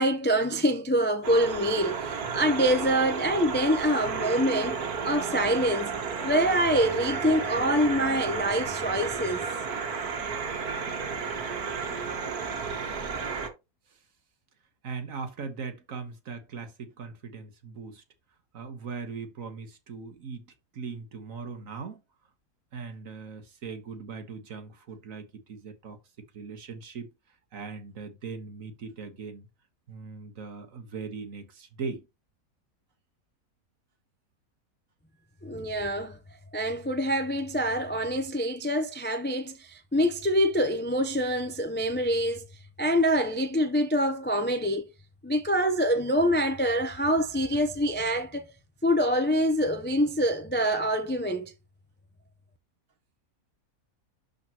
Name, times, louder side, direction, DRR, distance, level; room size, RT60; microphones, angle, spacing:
voice 1, 0.0-4.8 5.0-5.9 6.2-9.5 35.4-36.2 36.5-42.4 42.8-44.9 45.2-48.4 48.8-51.5, equal, 15° left, 0.3 m, -25 dB
sound 1, 1.2-13.5, right 5 dB, 80° right, 1.8 m, -32 dB
voice 2, 14.8-18.0 18.5-22.0 22.7-26.0 26.3-27.1 27.5-29.5 29.9-32.1, right 5 dB, 65° right, 1.6 m, -39 dB
11.5 x 4.1 x 2.9 m
omnidirectional pair, 1.6 m